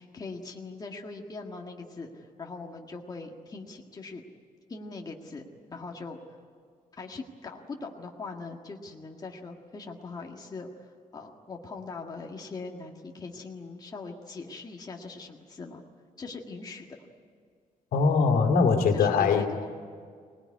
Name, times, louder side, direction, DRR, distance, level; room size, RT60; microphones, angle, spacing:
voice 1, 0.0-4.2 4.7-5.4 5.7-6.2 7.0-15.8 16.2-16.9 18.9-19.7, left 3 dB, 25° left, 1 dB, 1.8 m, -41 dB
voice 2, 17.9-19.4, left 5 dB, 85° left, 4 dB, 2.5 m, -22 dB
25.0 x 19.5 x 9.6 m, 2.1 s
wide cardioid pair, 160°, 15 cm